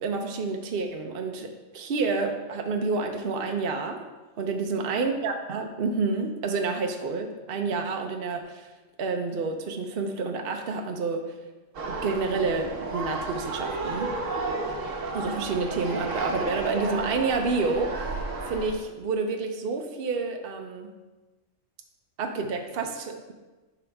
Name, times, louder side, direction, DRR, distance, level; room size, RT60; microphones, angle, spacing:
voice 1, 0.0-4.0 4.4-8.7 9.0-11.4 11.9-14.1 15.1-20.9 22.2-23.3, right 4 dB, 55° right, 3 dB, 0.9 m, -29 dB
sound 1, 11.7-18.7, right 3 dB, 80° right, 1.3 m, -32 dB
11.5 x 5.0 x 3.5 m, 1.2 s
omnidirectional pair, 1.3 m